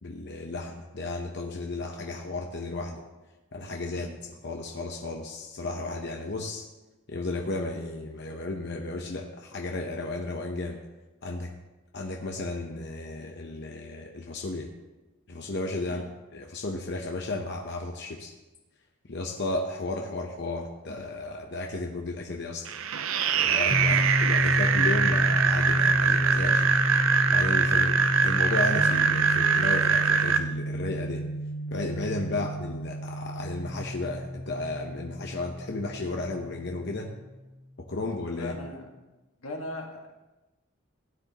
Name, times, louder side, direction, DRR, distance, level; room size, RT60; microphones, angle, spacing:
voice 1, 0.0-3.0 3.5-6.7 7.1-10.8 11.2-11.5 11.9-14.7 15.3-16.0 16.3-18.3 19.1-22.7 23.3-26.7 27.3-31.2 31.7-37.1 37.8-38.5, left 2 dB, 55° left, 2 dB, 0.8 m, -34 dB
sound 1, 22.7-30.4, right 6 dB, 70° right, 0.6 m, -23 dB
sound 2, 23.7-37.3, left 1 dB, 25° left, 1.0 m, -30 dB
voice 2, 38.3-38.9 39.4-40.2, left 1 dB, 85° left, 0 dB, 1.8 m, -39 dB
16.0 x 9.6 x 3.0 m, 1.1 s
head